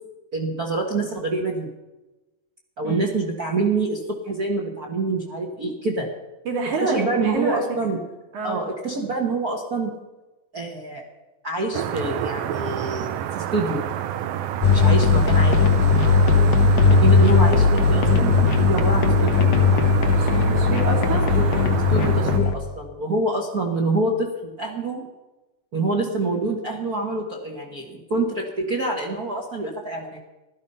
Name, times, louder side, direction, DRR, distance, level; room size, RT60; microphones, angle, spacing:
voice 1, 0.3-1.7 2.8-6.1 6.8-8.0 8.4-9.9 10.5-11.0 11.4-13.8 14.7-15.7 16.1-18.3 18.6-19.4 21.1-21.4 21.9-25.1 25.7-30.2, right 3 dB, 40° right, 0 dB, 1.4 m, -26 dB
voice 2, 6.4-7.6 8.3-8.6 20.2-21.3, right 3 dB, 65° right, 0 dB, 4.6 m, -27 dB
sound 1, 11.7-22.4, right 10 dB, 90° right, 1.3 m, -27 dB
sound 2, 14.6-22.5, left 5 dB, 90° left, 2.8 m, -18 dB
16.0 x 13.0 x 5.6 m, 1.1 s
omnidirectional pair, 3.7 m